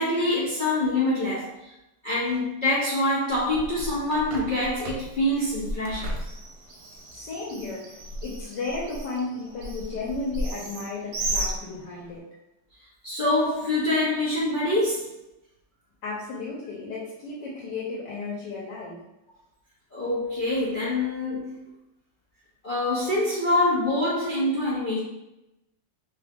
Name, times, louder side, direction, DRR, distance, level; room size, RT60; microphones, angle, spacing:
voice 1, 0.0-1.7 2.0-6.1 13.0-15.1 19.9-21.6 22.6-25.0, left 1 dB, 50° left, -9 dB, 0.5 m, -25 dB
Bird, 3.3-12.2, right 1 dB, 70° right, 1.2 m, -35 dB
voice 2, 7.1-7.8 8.2-12.2 16.0-19.0, left 3 dB, 75° left, -5 dB, 1.4 m, -34 dB
3.2 x 2.4 x 3.4 m, 0.91 s
omnidirectional pair, 1.9 m